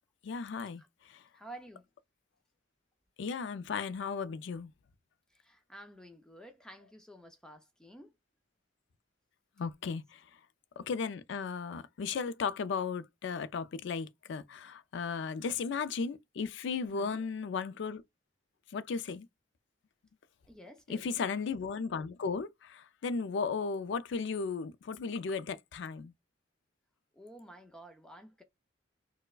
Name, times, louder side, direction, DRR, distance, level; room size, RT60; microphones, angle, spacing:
voice 1, 0.2-1.2 3.2-4.7 9.6-10.2 10.8-18.0 18.7-19.3 20.9-26.1, left 5 dB, 65° left, 0.4 m, -35 dB
voice 2, 1.3-1.9 5.3-8.2 16.8-17.3 20.5-21.3 27.1-28.4, right 1 dB, 5° left, 0.4 m, -51 dB
4.3 x 2.1 x 2.3 m
head